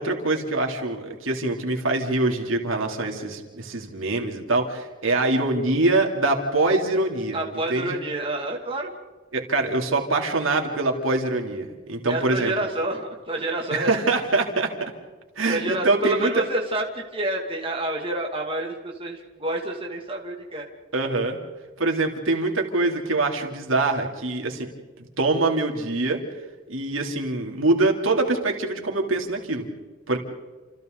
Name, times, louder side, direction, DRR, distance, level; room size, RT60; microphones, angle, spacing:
voice 1, 0.0-7.4 7.7-8.0 9.3-12.5 13.7-14.9 15.4-16.4 20.9-21.4 21.8-24.7 25.2-26.2 26.7-29.7 30.1-30.2, right 2 dB, 85° right, 2 dB, 3.4 m, -24 dB
voice 2, 7.3-8.9 12.1-13.9 15.5-20.7, right 1 dB, 25° right, 0 dB, 2.6 m, -28 dB
29.5 x 28.0 x 4.1 m, 1.3 s
head